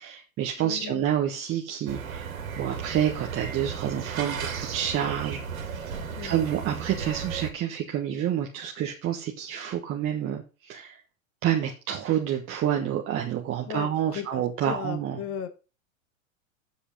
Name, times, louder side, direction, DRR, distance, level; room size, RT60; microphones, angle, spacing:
voice 1, 0.0-11.0 11.4-15.2, right 10 dB, 30° right, 1.4 m, -29 dB
voice 2, 0.6-1.1 6.1-6.3 13.6-15.5, left 9 dB, 35° left, 1.4 m, -36 dB
ambient sound street outside, 1.9-7.5, right 6 dB, 80° right, 2.3 m, -35 dB
7.6 x 6.8 x 5.3 m
hypercardioid pair, 105°, 40 cm